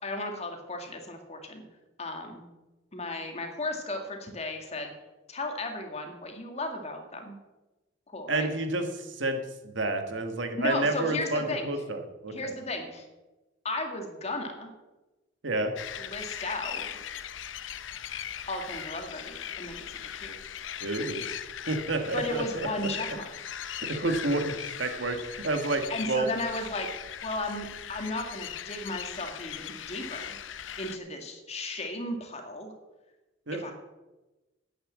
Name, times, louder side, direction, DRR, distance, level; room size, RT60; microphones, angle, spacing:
voice 1, 0.0-1.6 2.0-2.5 2.9-4.9 5.3-7.4 8.1-8.5 10.5-11.7 12.3-13.0 13.6-14.7 16.0-16.9 18.5-20.4 22.1-23.2 25.9-26.9 27.2-30.4 30.8-32.7 33.5-33.7, left 2 dB, 35° left, 4 dB, 2.0 m, -35 dB
voice 2, 8.3-12.5 15.4-15.7 20.8-21.3 21.7-22.9 23.9-25.8 26.1-26.3 33.5-33.7, right 2 dB, 70° right, 6 dB, 1.7 m, -30 dB
sound 1, 15.8-31.0, left 9 dB, 80° left, 0.6 m, -39 dB
10.5 x 8.7 x 7.5 m, 1.1 s
head